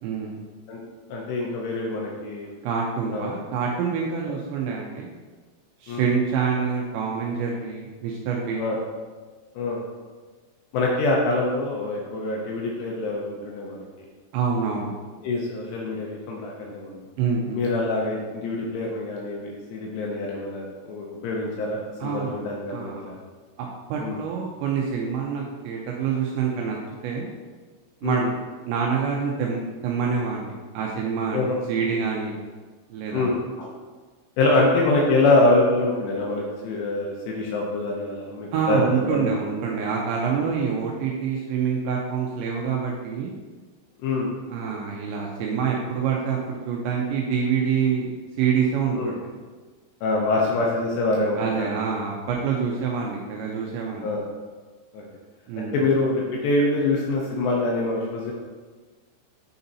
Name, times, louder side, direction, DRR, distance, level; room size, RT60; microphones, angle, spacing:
voice 1, 0.0-0.3 2.6-5.1 5.8-8.7 14.3-14.9 17.2-17.6 22.0-22.4 22.7-23.1 23.6-26.8 27.0-27.3 28.0-28.3 28.7-31.4 31.7-32.4 32.9-33.3 38.5-43.3 44.5-49.3 51.4-54.1 55.5-55.8, right 6 dB, 85° right, -1 dB, 2.6 m, -26 dB
voice 2, 1.1-2.5 3.1-3.4 4.2-4.3 5.9-6.1 8.6-8.8 9.6-9.8 10.7-13.8 15.2-17.0 17.5-23.1 24.0-24.2 28.0-28.2 31.3-31.6 33.1-33.7 34.4-39.4 44.0-44.3 48.9-49.1 50.0-51.7 54.0-54.3 54.9-55.0 55.6-58.3, left 2 dB, 80° left, -2 dB, 2.6 m, -25 dB
8.7 x 4.0 x 4.0 m, 1.4 s
omnidirectional pair, 5.7 m